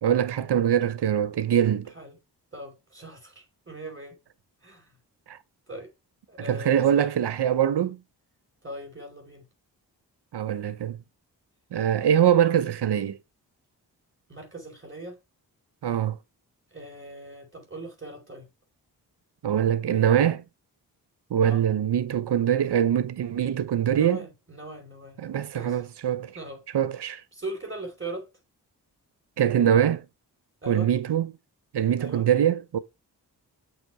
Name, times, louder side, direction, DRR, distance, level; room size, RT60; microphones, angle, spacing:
voice 1, 0.0-1.9 5.3-5.4 6.5-8.0 10.3-11.0 11.7-13.2 15.8-16.2 19.4-20.4 21.3-24.2 25.2-26.4 26.7-27.2 29.4-30.0 30.7-31.3 31.7-32.8, right 9 dB, 65° right, 0.9 m, -23 dB
voice 2, 2.5-4.2 4.6-4.8 5.7-5.9 6.3-7.1 8.6-9.4 14.3-15.2 16.7-18.5 21.4-21.6 23.9-25.2 25.5-25.8 26.3-26.6 27.3-28.3 30.6-30.9 32.0-32.2, right 1 dB, 25° right, 4.7 m, -40 dB
7.7 x 4.6 x 3.5 m
supercardioid pair, 40°, 43 cm